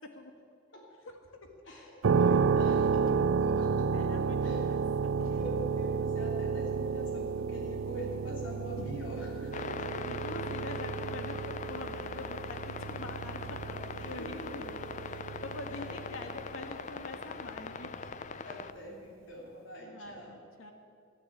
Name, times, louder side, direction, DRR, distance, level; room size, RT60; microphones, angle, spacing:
voice 1, 1.6-4.8 5.3-9.9 14.0-14.5 15.3-15.4 15.7-15.8 18.4-20.4, equal, 65° left, -1 dB, 3.3 m, -43 dB
sound 1, 2.0-16.7, right 5 dB, 80° right, 0.4 m, -31 dB
voice 2, 3.9-5.5 8.8-8.9 10.1-18.1 19.8-20.7, left 2 dB, 85° left, 5 dB, 1.7 m, -45 dB
sound 2, 9.5-18.7, left 5 dB, 35° left, 0.4 m, -41 dB
13.0 x 10.5 x 8.7 m, 2.3 s
head